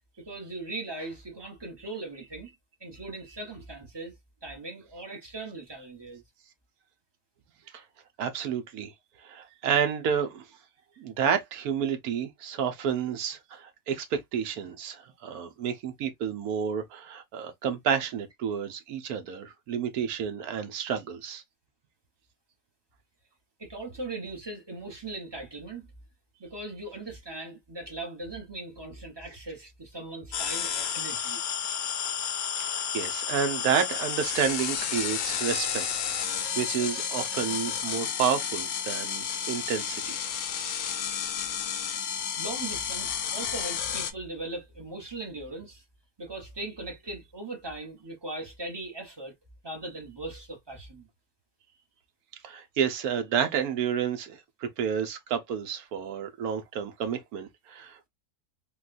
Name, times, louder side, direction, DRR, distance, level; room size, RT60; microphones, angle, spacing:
voice 1, 0.3-2.5 2.8-4.1 4.4-6.2 23.6-25.9 26.4-31.4 42.4-45.8 46.2-49.3 49.6-51.1, right 2 dB, 20° right, 0.7 m, -39 dB
voice 2, 8.2-8.9 9.2-10.4 11.0-21.4 32.6-35.9 36.2-40.2 52.4-58.1, right 7 dB, 75° right, 1.2 m, -30 dB
sound 1, 30.3-44.1, left 8 dB, 75° left, 1.0 m, -31 dB
3.8 x 2.3 x 2.5 m
omnidirectional pair, 1.6 m